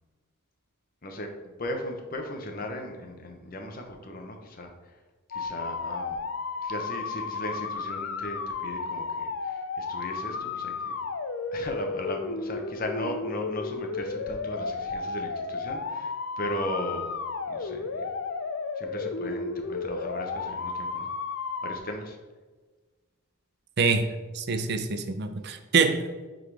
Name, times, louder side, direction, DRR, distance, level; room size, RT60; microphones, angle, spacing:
voice 1, 1.6-4.7 5.3-6.2 6.6-11.0 11.5-17.1 17.5-18.0 18.8-21.1 21.6-22.2, left 1 dB, 40° left, 0.9 m, -37 dB
sound 1, 5.3-21.8, left 4 dB, 60° left, 0.5 m, -33 dB
voice 2, 23.8-24.1 24.3-26.3, right 4 dB, 50° right, 0.5 m, -25 dB
10.5 x 3.8 x 3.3 m
head